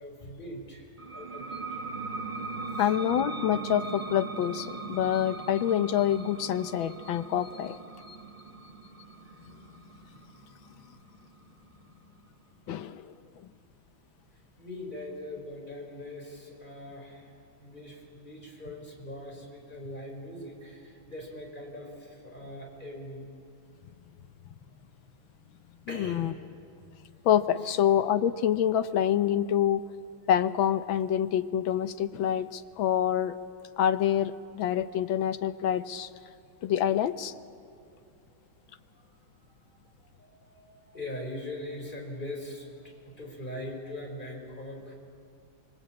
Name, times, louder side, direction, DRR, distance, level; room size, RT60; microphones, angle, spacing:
voice 1, 0.0-1.8 2.6-2.9 9.2-9.3 14.6-23.3 25.9-26.3 27.1-27.2 27.6-27.8 32.5-32.6 37.9-38.0 38.9-39.2 39.6-44.9, left 1 dB, 20° left, 1 dB, 4.6 m, -42 dB
sound 1, 1.0-12.3, right 4 dB, 30° right, 1.1 m, -40 dB
voice 2, 2.8-7.8 8.1-8.2 12.7-13.5 25.9-26.3 27.2-29.8 30.3-33.4 33.8-36.1 36.6-37.3, left 10 dB, 70° left, 12 dB, 1.5 m, -27 dB
25.5 x 24.0 x 8.7 m, 2.4 s
omnidirectional pair, 2.3 m